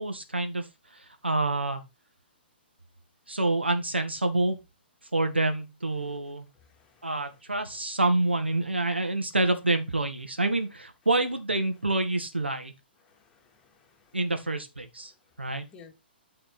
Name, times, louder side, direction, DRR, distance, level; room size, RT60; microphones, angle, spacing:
voice 1, 0.0-1.8 3.3-4.6 5.1-6.5 7.0-12.7 14.1-15.1 15.4-15.7, right 2 dB, 80° right, 1.7 m, -27 dB
voice 2, 6.6-7.1 13.0-14.2 15.7-15.9, left 6 dB, 15° left, 2.3 m, -55 dB
8.9 x 5.0 x 4.3 m
figure-of-eight pair, 120°, 6 cm